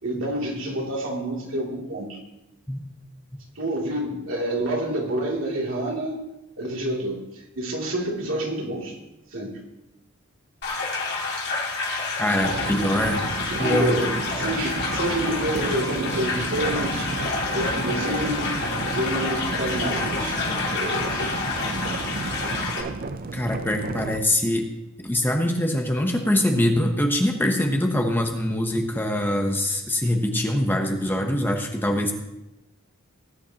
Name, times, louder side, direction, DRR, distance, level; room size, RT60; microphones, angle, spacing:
voice 1, 0.0-2.2 3.5-6.2 6.6-9.0 9.3-9.6 13.0-13.2 13.4-17.1 17.4-18.6 18.9-20.4 20.7-21.4, right 1 dB, 65° right, -2 dB, 2.8 m, -28 dB
sound 1, 10.6-22.8, left 3 dB, 55° left, 2.4 m, -28 dB
voice 2, 12.2-13.2 13.6-13.9 23.3-24.7 25.0-32.1, left 1 dB, 10° left, 3 dB, 0.9 m, -23 dB
sound 2, 12.4-24.2, right 3 dB, 45° right, 0.5 m, -32 dB
19.0 x 9.9 x 2.9 m, 0.93 s
head